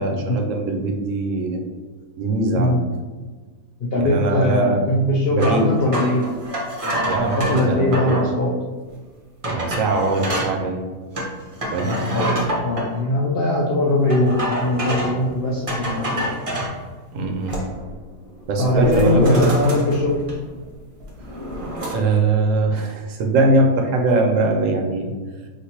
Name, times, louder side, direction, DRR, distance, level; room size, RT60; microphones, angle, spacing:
voice 1, 0.0-1.6 2.2-2.7 4.0-4.8 5.3-5.7 7.0-8.2 9.5-10.8 11.7-11.9 17.1-17.6 18.5-19.7 21.9-25.1, right 2 dB, 65° right, 2 dB, 0.9 m, -21 dB
voice 2, 2.5-2.9 3.8-6.3 6.8-8.6 11.8-16.3 18.6-20.2, left 1 dB, 85° left, -3 dB, 0.5 m, -21 dB
sound 1, 5.4-8.3 8.9-9.0 9.4-10.5 11.1-12.9 14.1-15.2 15.7-16.8 17.2-17.9 18.2-18.4 18.8-20.6 21.0-21.9, equal, 35° right, 0.6 m, -27 dB
6.1 x 2.5 x 2.8 m, 1.4 s
omnidirectional pair, 1.6 m